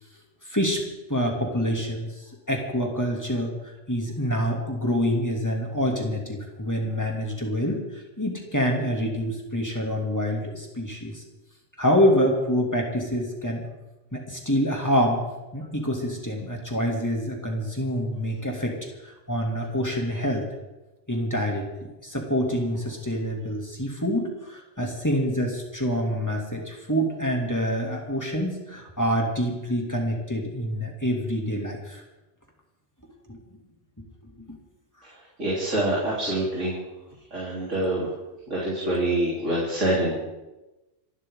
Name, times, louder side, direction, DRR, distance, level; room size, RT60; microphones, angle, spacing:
voice 1, 0.4-0.8 1.1-11.2 11.8-13.6 14.1-15.2 15.5-18.7 19.0-20.5 21.1-21.7 22.0-32.0 33.3-33.4 34.0-34.6, equal, 15° left, 0 dB, 2.8 m, -26 dB
voice 2, 35.4-36.8 37.3-38.1 38.5-40.2, right 1 dB, 85° right, -6 dB, 4.3 m, -25 dB
28.0 x 12.5 x 3.9 m, 1.0 s
omnidirectional pair, 1.2 m